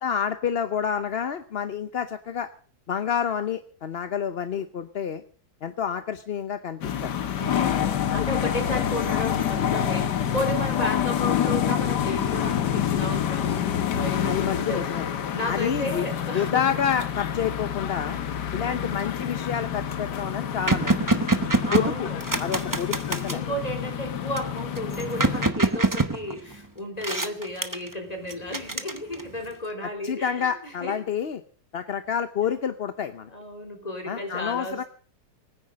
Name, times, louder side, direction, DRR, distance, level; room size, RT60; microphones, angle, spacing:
voice 1, 0.0-2.5 2.9-5.2 5.6-7.3 8.1-8.2 14.2-15.0 15.5-16.1 16.3-18.2 18.5-21.0 21.7-22.1 22.4-23.4 29.8-31.4 31.7-33.3 34.1-34.8, left 8 dB, 50° left, 10 dB, 0.9 m, -28 dB
sound 1, 6.8-25.5, left 9 dB, 85° left, 1.7 m, -27 dB
voice 2, 7.3-13.6 13.9-14.8 15.3-16.6 18.1-18.2 18.6-19.0 21.6-22.8 23.3-31.0 33.3-34.9, left 1 dB, 25° left, 3 dB, 3.7 m, -33 dB
sound 2, 19.0-19.3 19.8-19.9 20.1-23.5 24.4-26.7 27.0-27.9 28.3-29.5, right 3 dB, 15° right, 0.9 m, -26 dB
20.5 x 9.9 x 6.3 m, 0.43 s
omnidirectional pair, 1.8 m